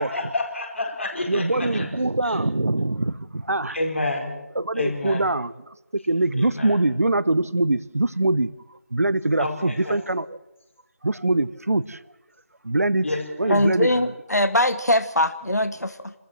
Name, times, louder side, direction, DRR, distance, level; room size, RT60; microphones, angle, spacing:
voice 1, 0.0-1.9 2.2-2.4 3.7-4.4 4.7-5.2 6.4-6.8 9.4-10.0 13.0-13.5 13.9-14.0, left 2 dB, 50° left, 2 dB, 4.9 m, -29 dB
voice 2, 1.3-3.8 4.6-5.7 6.0-8.5 8.9-10.3 11.0-12.0 12.6-13.0 13.4-13.9, right 2 dB, 65° right, 17 dB, 0.8 m, -23 dB
voice 3, 13.5-16.1, left 1 dB, 85° left, 12 dB, 0.9 m, -22 dB
27.5 x 13.5 x 7.6 m, 1.0 s
figure-of-eight pair, 165°, 9 cm